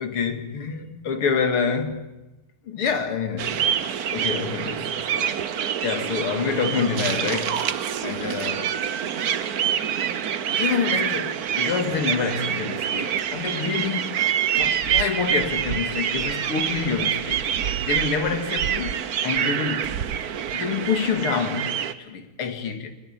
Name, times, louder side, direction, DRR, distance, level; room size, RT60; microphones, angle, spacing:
voice 1, 0.0-2.1 2.6-3.6 4.1-5.4 5.8-7.7 8.0-8.7 10.6-14.2 14.5-17.4 17.8-19.9 20.5-22.9, left 6 dB, 80° left, 2.9 m, -27 dB
sound 1, 3.4-21.9, right 9 dB, 55° right, 1.2 m, -26 dB
22.5 x 20.5 x 8.8 m
omnidirectional pair, 2.4 m